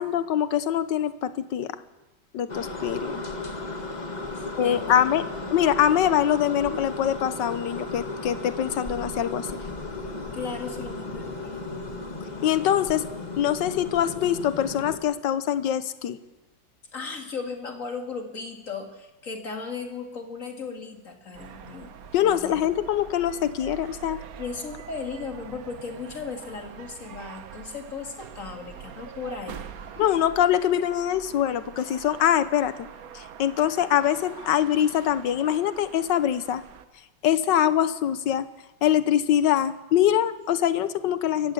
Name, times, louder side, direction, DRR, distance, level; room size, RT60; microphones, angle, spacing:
voice 1, 0.0-1.7 2.3-3.2 4.6-5.2 5.5-9.6 12.4-13.1 13.4-16.2 22.1-24.2 30.0-32.8 33.1-36.6 37.2-38.5 38.8-41.5, left 10 dB, 75° left, 14 dB, 1.5 m, -24 dB
sound 1, 2.5-15.0, left 3 dB, 25° left, 1.8 m, -35 dB
voice 2, 4.4-5.0 5.4-5.7 10.3-11.8 16.9-21.9 22.2-22.5 24.4-30.0, left 5 dB, 45° left, 4 dB, 2.4 m, -36 dB
sound 2, 21.3-36.8, right 8 dB, 55° right, 1.2 m, -44 dB
20.5 x 15.0 x 8.4 m, 1.1 s
omnidirectional pair, 2.0 m